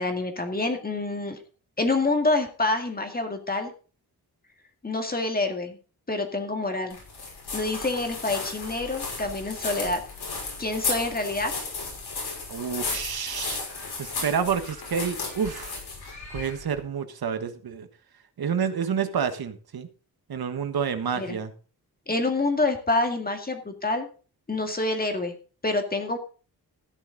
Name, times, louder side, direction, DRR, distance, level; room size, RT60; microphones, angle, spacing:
voice 1, 0.0-1.4 1.8-3.7 4.8-5.8 6.1-7.0 7.5-10.0 10.6-11.5 21.2-21.4 22.1-24.1 24.5-25.3 25.6-26.2, left 2 dB, 25° left, 5 dB, 2.1 m, -27 dB
sound 1, 6.9-16.8, left 4 dB, 80° left, 5.9 m, -34 dB
voice 2, 12.5-13.6 14.0-15.7 16.3-17.9 18.4-19.9 20.3-21.5, right 7 dB, 70° right, 9 dB, 1.4 m, -29 dB
14.0 x 9.8 x 4.0 m, 0.36 s
wide cardioid pair, 150°, 38 cm